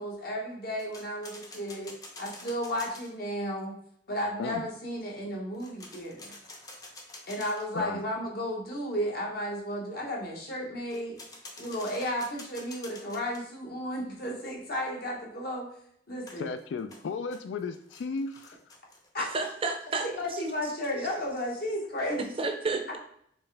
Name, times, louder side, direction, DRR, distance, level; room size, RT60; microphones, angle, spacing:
voice 1, 0.0-3.8 4.1-6.3 7.3-11.2 11.6-15.7 16.1-16.5 19.1-19.3 20.2-22.2, equal, 55° left, -1 dB, 1.1 m, -33 dB
sound 1, 0.8-3.1 5.5-7.8 10.9-13.4 16.3-19.1, left 2 dB, 20° left, 0.6 m, -48 dB
voice 2, 16.4-18.6, left 4 dB, 85° left, 9 dB, 0.3 m, -34 dB
voice 3, 19.2-20.1 22.2-23.0, right 3 dB, 30° right, 5 dB, 0.5 m, -31 dB
4.4 x 3.2 x 3.3 m, 0.67 s
head